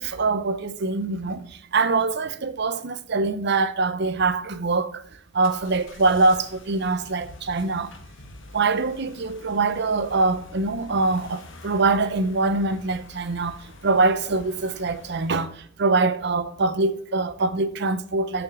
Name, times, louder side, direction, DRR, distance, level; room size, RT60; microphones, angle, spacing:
voice 1, 0.0-5.0 5.3-7.9 8.5-18.4, right 3 dB, 60° right, 0.7 m, -24 dB
sound 1, 5.4-15.6, left 2 dB, 65° left, 1.4 m, -46 dB
7.1 x 6.5 x 6.1 m
head